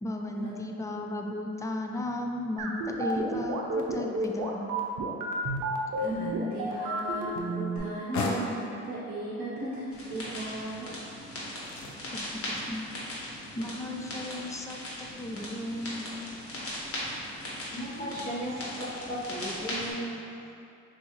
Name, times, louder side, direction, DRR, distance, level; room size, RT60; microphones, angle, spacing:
voice 1, 0.0-4.8 12.1-12.9 13.6-16.1, left 1 dB, 10° left, 2 dB, 0.3 m, -35 dB
sound 1, 2.6-7.8, right 2 dB, 85° right, 0.6 m, -31 dB
voice 2, 6.0-10.9, right 2 dB, 30° right, -9 dB, 0.9 m, -36 dB
sound 2, 6.4-19.6, left 3 dB, 70° left, 0.7 m, -43 dB
sound 3, 9.9-19.9, left 1 dB, 50° left, 1.4 m, -39 dB
voice 3, 17.7-20.5, equal, 30° left, -9 dB, 1.1 m, -36 dB
5.8 x 2.6 x 3.0 m, 2.6 s
cardioid pair, 90°, 30 cm